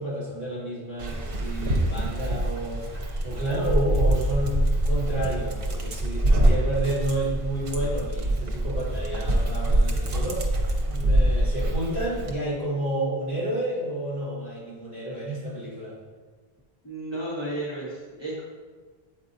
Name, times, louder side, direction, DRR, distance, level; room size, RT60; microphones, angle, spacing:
voice 1, 0.0-4.5 4.8-16.0, right 1 dB, 40° left, -7 dB, 1.8 m, -30 dB
Dog, 1.0-12.3, right 1 dB, 65° right, 0.9 m, -25 dB
voice 2, 16.8-18.4, right 1 dB, 25° right, -6 dB, 1.2 m, -33 dB
7.7 x 4.7 x 2.7 m, 1.4 s
omnidirectional pair, 1.0 m